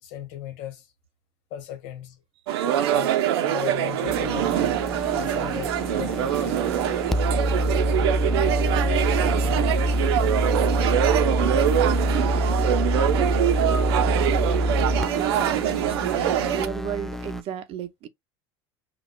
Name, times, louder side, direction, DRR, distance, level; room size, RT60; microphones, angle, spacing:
voice 1, 0.0-0.9 1.5-2.2 2.9-4.8 5.1-6.8 7.2-7.3 8.4-9.1 10.2-10.4 11.7-11.9 12.7-12.8, left 10 dB, 65° left, 1.4 m, -38 dB
sound 1, 2.5-16.7, right 11 dB, 90° right, 0.6 m, -24 dB
sound 2, 4.1-17.4, equal, ahead, 0.3 m, -26 dB
voice 2, 9.1-10.2 11.9-18.1, right 9 dB, 45° right, 0.6 m, -35 dB
5.2 x 2.3 x 2.2 m
supercardioid pair, 115°, 13 cm